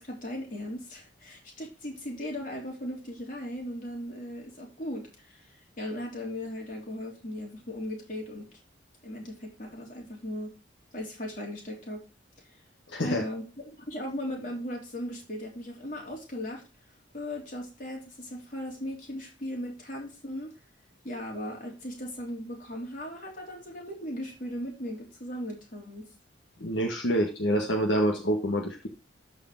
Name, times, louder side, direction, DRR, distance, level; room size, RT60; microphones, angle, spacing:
voice 1, 0.0-8.5 9.0-10.5 10.9-12.0 13.0-16.6 17.1-20.5 21.0-26.0, left 1 dB, 45° left, -1 dB, 3.5 m, -37 dB
voice 2, 12.9-13.2 26.6-28.9, equal, 75° left, 1 dB, 1.6 m, -27 dB
13.5 x 4.9 x 3.8 m, 0.31 s
head